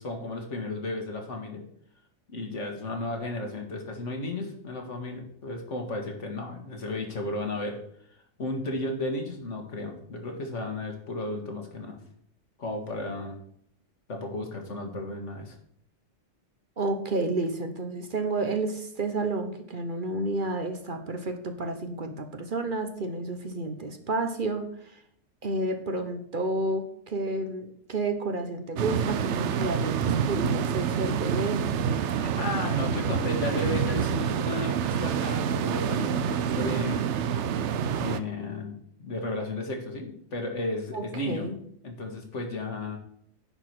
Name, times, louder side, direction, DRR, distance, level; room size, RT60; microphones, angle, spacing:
voice 1, 0.0-1.6 2.3-7.8 8.4-12.0 12.6-13.4 14.1-15.6 32.1-37.1 38.0-41.5 41.8-43.0, left 2 dB, 75° left, 3 dB, 2.0 m, -34 dB
voice 2, 16.8-25.0 25.4-31.6 40.9-41.6, right 2 dB, 45° right, 7 dB, 1.1 m, -30 dB
sound 1, 28.8-38.2, right 8 dB, 70° right, 0.9 m, -27 dB
9.9 x 4.9 x 6.0 m, 0.67 s
omnidirectional pair, 1.3 m